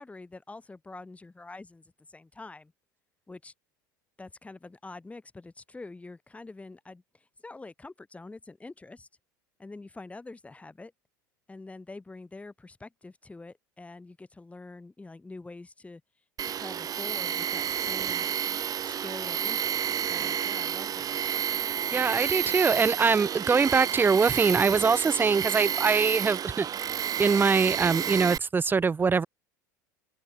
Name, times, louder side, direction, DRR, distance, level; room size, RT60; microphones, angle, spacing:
voice 1, 0.0-2.7 3.3-3.5 4.2-9.1 9.6-10.9 11.5-16.0 16.4-18.3 18.8-21.4, left 3 dB, 15° left, 6.6 m, -45 dB
Tools, 16.4-28.4, right 9 dB, 35° right, 2.0 m, -30 dB
voice 2, 21.9-26.7 27.2-29.3, right 5 dB, 20° right, 1.0 m, -23 dB
hypercardioid pair, 90°, 10 cm